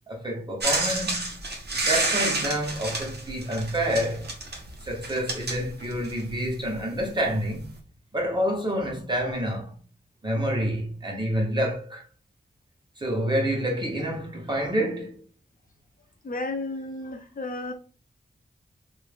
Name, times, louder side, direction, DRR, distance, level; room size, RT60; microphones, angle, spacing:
voice 1, 0.1-1.3 1.8-4.3 4.8-7.7 8.1-9.7 10.2-12.0 13.0-15.2, equal, 25° right, 1.2 m, -28 dB
sound 1, 0.6-6.3 7.3-7.4, right 2 dB, 70° right, 1.0 m, -29 dB
voice 2, 16.2-17.7, left 2 dB, 55° left, 0.7 m, -32 dB
3.0 x 2.6 x 3.4 m
wide cardioid pair, 80°, 18 cm